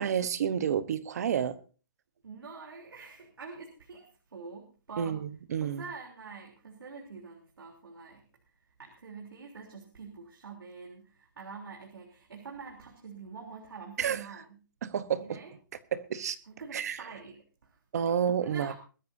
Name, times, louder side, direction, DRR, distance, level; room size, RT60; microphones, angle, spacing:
voice 1, 0.0-1.6 5.0-5.8 14.0-14.2 14.8-15.4 15.9-16.4 16.7-17.0 17.9-18.7, right 8 dB, 45° right, 1.0 m, -30 dB
voice 2, 2.2-5.2 5.6-8.3 8.8-14.6 15.2-15.5 16.5-17.8 18.4-18.7, right 5 dB, 90° right, 3.5 m, -46 dB
21.0 x 13.0 x 2.7 m
hypercardioid pair, 170°, 12 cm